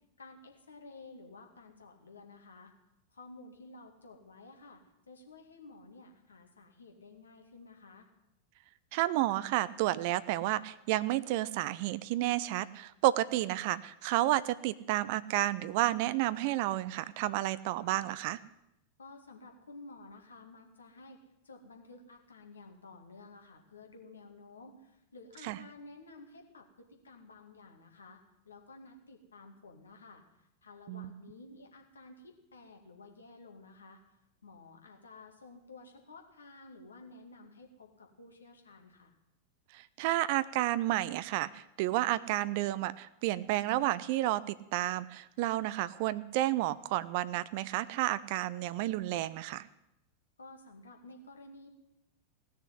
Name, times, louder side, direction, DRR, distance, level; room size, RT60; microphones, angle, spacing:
voice 1, 0.2-2.7 3.1-4.8 5.1-8.1 19.0-28.2 28.5-34.0 34.4-39.1 50.4-51.7, left 3 dB, 75° left, 3 dB, 2.2 m, -53 dB
voice 2, 8.9-18.4 25.4-25.6 30.9-31.1 39.7-49.7, right 15 dB, 50° right, 16 dB, 0.5 m, -31 dB
16.5 x 6.6 x 9.9 m, 0.86 s
figure-of-eight pair, 90°, 0 cm